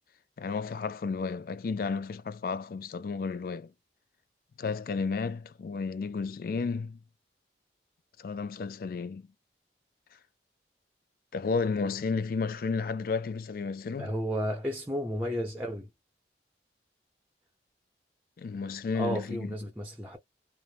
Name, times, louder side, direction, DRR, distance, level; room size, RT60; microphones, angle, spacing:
voice 1, 0.4-3.7 4.6-7.0 8.2-9.3 11.3-14.1 18.4-19.5, left 4 dB, 55° left, 0.3 m, -32 dB
voice 2, 14.0-15.9 18.9-20.2, equal, 10° right, 0.6 m, -32 dB
3.1 x 2.0 x 2.3 m
head